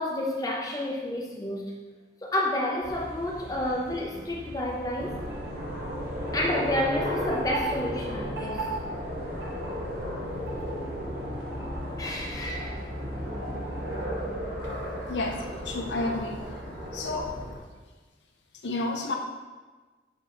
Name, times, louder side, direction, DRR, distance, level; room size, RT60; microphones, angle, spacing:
voice 1, 0.0-1.7 2.2-5.2 6.3-8.8 12.0-12.8, left 1 dB, 20° left, -2 dB, 0.9 m, -30 dB
sound 1, 2.8-14.6, equal, 10° right, 1.8 m, -46 dB
sound 2, 5.0-17.6, equal, 65° right, 1.5 m, -34 dB
voice 2, 15.1-16.4 16.9-17.4 18.6-19.2, left 2 dB, 85° left, 3 dB, 0.7 m, -30 dB
6.3 x 4.8 x 4.0 m, 1.3 s
head